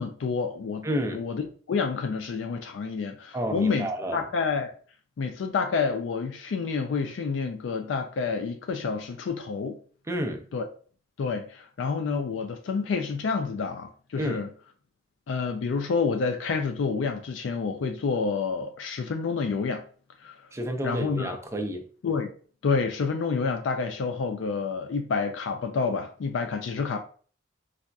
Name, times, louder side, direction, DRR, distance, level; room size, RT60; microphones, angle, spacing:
voice 1, 0.0-1.4 1.7-4.7 5.2-9.8 10.5-10.7 11.2-14.5 15.3-19.8 20.2-20.5 20.8-21.4 22.0-22.3 22.6-27.0, left 5 dB, 85° left, 0.4 m, -28 dB
voice 2, 0.8-1.2 3.3-4.2 10.1-10.5 14.2-14.4 20.5-21.9, equal, 15° right, 0.4 m, -30 dB
4.0 x 2.4 x 2.2 m
head